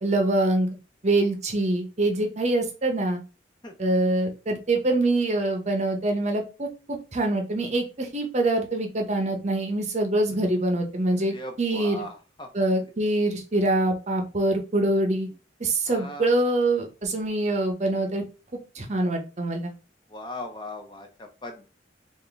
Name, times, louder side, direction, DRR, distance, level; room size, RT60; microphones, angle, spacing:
voice 1, 0.0-0.7 1.0-3.2 3.8-12.0 12.5-15.3 15.6-18.2 18.7-19.7, right 2 dB, 35° right, 4 dB, 0.7 m, -24 dB
voice 2, 11.1-12.5 12.8-12.9 15.9-16.3 20.1-21.7, left 1 dB, 25° left, 4 dB, 0.6 m, -39 dB
3.4 x 2.5 x 3.8 m, 0.32 s
head